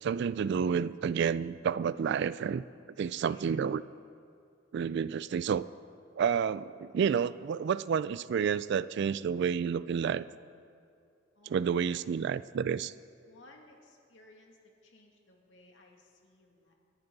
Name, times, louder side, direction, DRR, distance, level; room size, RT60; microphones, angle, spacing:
voice 1, 0.0-2.6 3.0-3.8 4.7-5.7 6.2-10.2 11.5-12.9, right 7 dB, 60° right, 16 dB, 0.3 m, -30 dB
voice 2, 3.0-3.6 11.4-12.1 13.3-16.7, left 2 dB, 70° left, 0 dB, 2.4 m, -58 dB
27.5 x 10.5 x 4.0 m, 2.5 s
head